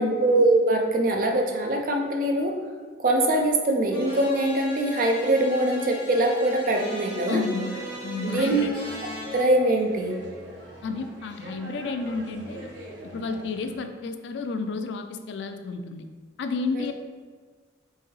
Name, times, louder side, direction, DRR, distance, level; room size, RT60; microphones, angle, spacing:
voice 1, 0.0-2.5 3.0-7.4 8.2-8.7 9.3-10.2 16.7-16.9, right 1 dB, 45° right, 3 dB, 0.4 m, -23 dB
sound 1, 3.9-9.4, left 1 dB, 30° left, 0.8 m, -38 dB
voice 2, 7.3-7.7 8.0-8.7 10.8-12.7 13.0-16.0 16.4-16.9, left 4 dB, 70° left, 7 dB, 0.3 m, -31 dB
sound 2, 7.6-13.8, right 1 dB, 70° right, 0.8 m, -42 dB
4.6 x 2.7 x 3.1 m, 1.5 s
head